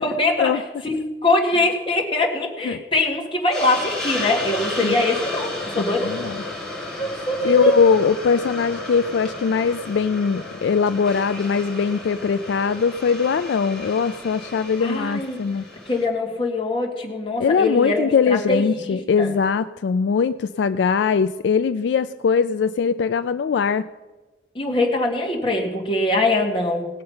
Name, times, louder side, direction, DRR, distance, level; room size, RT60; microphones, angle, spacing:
voice 1, 0.0-6.1 7.0-7.7 14.8-15.4 15.9-19.3 24.6-26.9, left 2 dB, 25° left, 0 dB, 1.8 m, -23 dB
Hiss, 3.5-16.1, left 2 dB, 5° left, 2.2 m, -33 dB
voice 2, 5.8-6.4 7.4-15.6 17.4-23.9, left 6 dB, 70° left, 12 dB, 0.3 m, -21 dB
18.5 x 6.6 x 5.6 m, 1.2 s
head